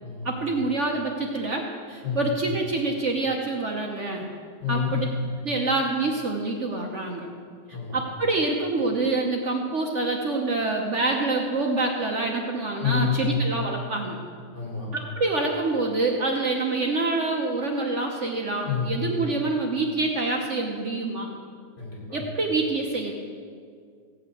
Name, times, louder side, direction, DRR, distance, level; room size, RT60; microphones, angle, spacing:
voice 1, 0.2-4.3 4.7-5.1 5.4-7.3 7.9-14.2 14.9-21.3 22.1-23.1, right 3 dB, 50° right, 1 dB, 1.1 m, -26 dB
voice 2, 4.6-5.1 7.7-8.0 12.8-13.4 14.5-14.9 18.6-19.0 21.8-22.2, left 7 dB, 65° left, -6 dB, 4.9 m, -28 dB
16.5 x 5.6 x 8.4 m, 2.1 s
omnidirectional pair, 1.9 m